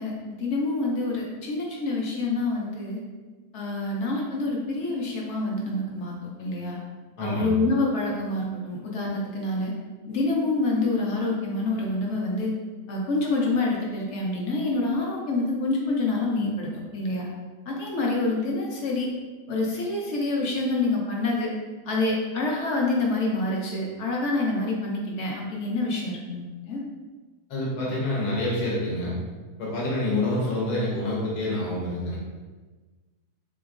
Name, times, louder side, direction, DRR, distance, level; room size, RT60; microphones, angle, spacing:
voice 1, 0.0-3.0 3.5-6.8 7.2-9.7 10.1-12.5 12.9-17.3 17.7-19.1 19.5-21.5 21.8-26.8, left 2 dB, 65° left, -2 dB, 0.7 m, -27 dB
voice 2, 7.2-7.5 27.5-29.1 29.6-32.2, left 1 dB, 90° left, -5 dB, 1.3 m, -27 dB
3.4 x 2.9 x 2.4 m, 1.3 s
omnidirectional pair, 1.6 m